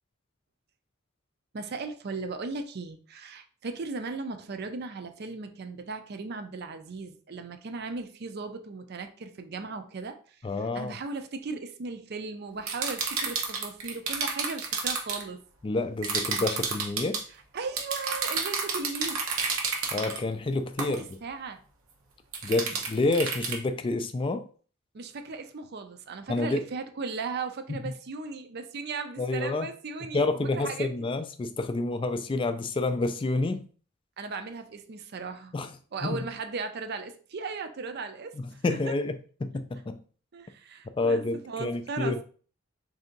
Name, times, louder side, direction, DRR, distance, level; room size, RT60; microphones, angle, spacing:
voice 1, 1.5-15.4 17.5-19.2 20.9-21.6 24.9-30.9 34.2-35.6 35.9-38.8 40.3-42.2, right 4 dB, 50° right, 0.5 m, -37 dB
voice 2, 10.4-11.0 15.6-17.2 19.9-21.2 22.4-24.4 26.3-26.6 27.7-27.8 29.2-29.7 30.1-33.6 35.5-35.7 36.0-36.3 38.3-40.0 41.0-42.2, left 2 dB, 25° left, 0.3 m, -29 dB
sound 1, 12.7-15.2 16.0-17.2 17.8-20.2 20.8-21.0 22.3-23.6, right 5 dB, 85° right, 0.9 m, -30 dB
3.3 x 2.7 x 3.8 m
head